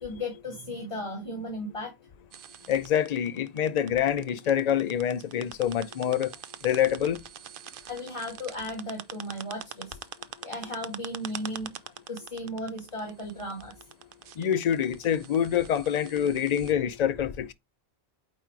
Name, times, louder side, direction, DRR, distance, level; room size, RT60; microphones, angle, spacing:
voice 1, 0.0-1.9 2.6-2.7 7.9-10.0 10.4-11.7 12.1-13.7, left 1 dB, 30° left, 1.7 m, -35 dB
sound 1, 2.3-16.7, right 10 dB, 60° right, 0.7 m, -44 dB
voice 2, 2.7-6.3 6.6-7.2 14.4-17.5, left 9 dB, 45° left, 0.6 m, -26 dB
8.7 x 3.0 x 4.6 m
omnidirectional pair, 1.1 m